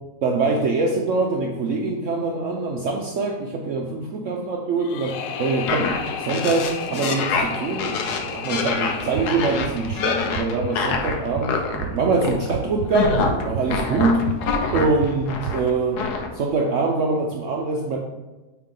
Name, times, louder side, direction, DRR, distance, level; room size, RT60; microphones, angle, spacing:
voice 1, 0.2-5.9 6.2-13.2 13.4-14.2 14.7-16.0 16.3-18.0, right 3 dB, 60° right, 0 dB, 0.9 m, -24 dB
sound 1, 4.8-11.8, left 7 dB, 70° left, 0.9 m, -34 dB
sound 2, 5.7-11.8 12.2-12.5 12.8-15.7 16.0-16.3, left 4 dB, 85° left, 1.3 m, -25 dB
sound 3, 9.0-15.5, right 8 dB, 85° right, 1.2 m, -34 dB
8.4 x 3.6 x 3.8 m, 1.1 s
omnidirectional pair, 1.7 m